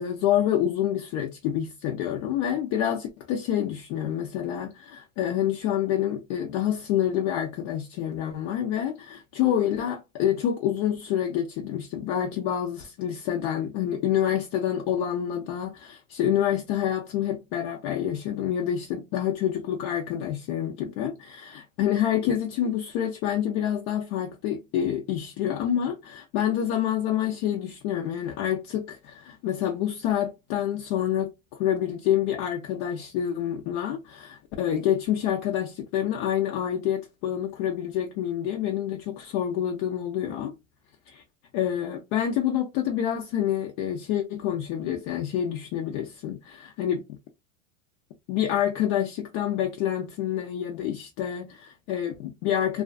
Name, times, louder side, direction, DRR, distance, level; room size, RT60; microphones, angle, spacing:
voice 1, 0.0-40.5 41.1-41.2 41.5-47.2 48.3-52.8, left 10 dB, 45° left, 0.4 m, -27 dB
2.4 x 2.3 x 2.4 m
supercardioid pair, 120°, 41 cm